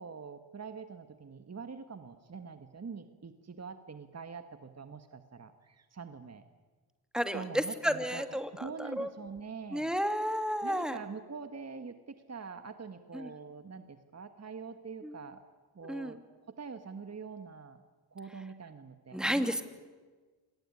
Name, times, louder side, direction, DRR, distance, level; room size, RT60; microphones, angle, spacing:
voice 1, 0.0-6.4 7.3-9.9 10.6-15.4 15.8-16.2 16.6-17.8 18.1-19.6, right 5 dB, 40° right, 8 dB, 1.7 m, -44 dB
voice 2, 7.1-9.1 9.7-11.0 13.1-13.3 15.0-15.2 15.9-16.2 19.1-19.6, equal, ahead, 8 dB, 2.8 m, -32 dB
27.0 x 19.5 x 9.9 m, 1.4 s
cardioid pair, 55°, 40 cm